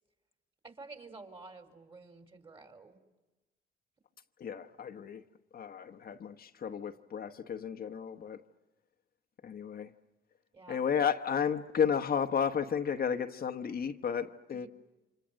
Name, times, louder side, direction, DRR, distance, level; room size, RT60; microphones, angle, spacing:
voice 1, 0.6-3.0 10.5-10.9 14.5-14.7, right 3 dB, 25° right, 4.0 m, -50 dB
voice 2, 4.4-5.2 5.5-8.4 9.4-9.9 10.7-14.7, left 7 dB, 50° left, 1.1 m, -33 dB
30.0 x 26.5 x 6.4 m
cardioid pair, 90°, 20 cm